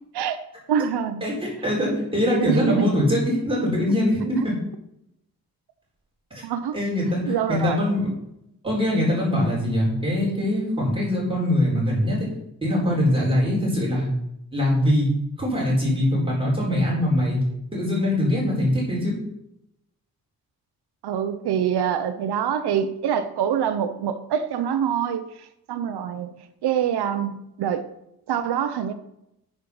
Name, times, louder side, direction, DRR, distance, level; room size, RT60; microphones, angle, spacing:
voice 1, 0.7-1.2 2.4-2.9 4.2-4.5 6.4-6.8 7.3-7.9 21.0-27.9 28.3-28.9, right 8 dB, 85° right, 10 dB, 0.7 m, -25 dB
voice 2, 1.2-4.5 6.3-6.4 6.7-8.1 8.6-12.3 12.6-14.1 14.5-15.1 15.4-17.4 17.7-19.2, left 1 dB, 15° right, -5 dB, 4.2 m, -22 dB
8.7 x 5.5 x 6.1 m, 0.82 s
wide cardioid pair, 145°, 38 cm